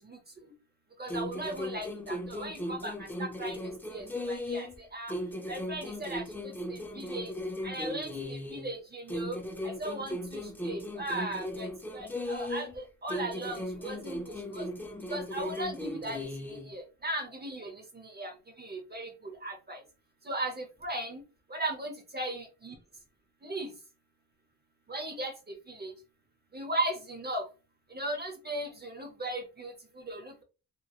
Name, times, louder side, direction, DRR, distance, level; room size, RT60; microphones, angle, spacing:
voice 1, 1.0-2.9 3.2-4.7 4.9-5.1 5.5-6.2 7.0-7.3 7.6-9.4 9.6-11.7 11.9-14.6 15.1-16.2 16.7-17.7 18.2-18.3 18.6-19.1 19.4-19.8 20.3-21.2 21.5-22.7 23.4-23.7 24.9-25.3 25.8-25.9 26.5-27.4 27.9-29.7 30.1-30.4, right 1 dB, 25° right, 4 dB, 0.6 m, -37 dB
sound 1, 1.1-4.8 5.1-8.7 9.1-12.8 13.1-16.7, left 1 dB, 5° left, 0.3 m, -37 dB
2.9 x 2.8 x 2.3 m, 0.32 s
wide cardioid pair, 145°, 37 cm